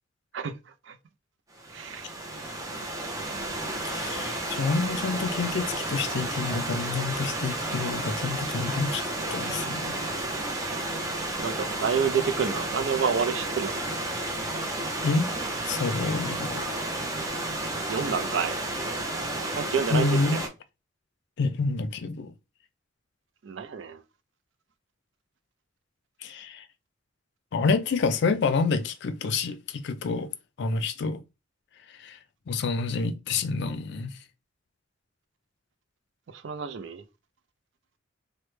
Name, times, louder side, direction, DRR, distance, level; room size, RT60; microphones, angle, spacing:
Stream / Liquid, 1.6-20.5, right 1 dB, 20° right, 0.6 m, -32 dB
voice 1, 1.7-2.1 11.4-13.8 17.9-18.6 19.6-20.1 20.3-20.4 23.4-24.0 36.3-37.0, right 6 dB, 70° right, 0.4 m, -28 dB
voice 2, 3.8-9.0 9.3-10.3 14.5-14.7 15.0-15.3 15.6-16.7 19.9-20.4 21.4-22.3 26.2-26.7 27.5-30.3 30.6-31.2 32.0-32.2 32.5-34.1, left 4 dB, 65° left, 0.4 m, -28 dB
3.1 x 2.1 x 3.1 m
head